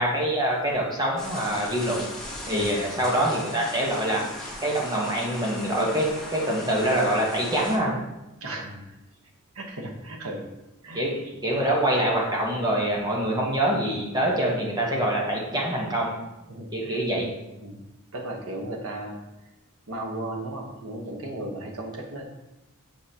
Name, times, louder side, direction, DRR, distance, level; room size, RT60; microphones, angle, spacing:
voice 1, 0.0-2.1 2.5-8.0 10.9-16.1 16.7-17.3, right 1 dB, 20° right, -2 dB, 1.1 m, -25 dB
sound 1, 1.2-7.8, left 1 dB, 5° left, 1.1 m, -38 dB
voice 2, 2.5-2.9 8.4-9.0 9.5-10.5 10.8-11.3 16.5-17.0 17.6-17.8 18.1-19.2 19.9-22.3, right 1 dB, 85° right, 1 dB, 1.1 m, -35 dB
7.1 x 4.7 x 2.9 m, 0.96 s
head